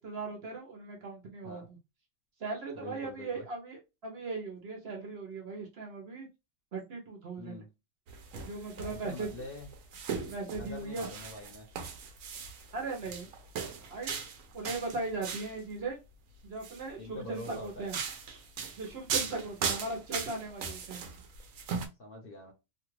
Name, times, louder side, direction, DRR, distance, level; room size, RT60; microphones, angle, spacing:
voice 1, 0.0-1.8 2.4-6.3 6.7-7.6 8.4-9.3 10.2-11.1 12.7-13.3 13.9-14.2 14.5-16.0 16.4-18.0 18.8-21.0, right 3 dB, 55° right, 0.9 m, -38 dB
voice 2, 2.7-3.4 7.4-7.7 8.8-9.7 10.5-11.7 17.0-17.9 19.2-19.4 22.0-22.5, left 2 dB, 50° left, 0.8 m, -45 dB
sound 1, 8.1-15.6 16.4-16.8 17.4-21.9, right 6 dB, 75° right, 1.0 m, -38 dB
2.8 x 2.3 x 3.1 m
omnidirectional pair, 1.5 m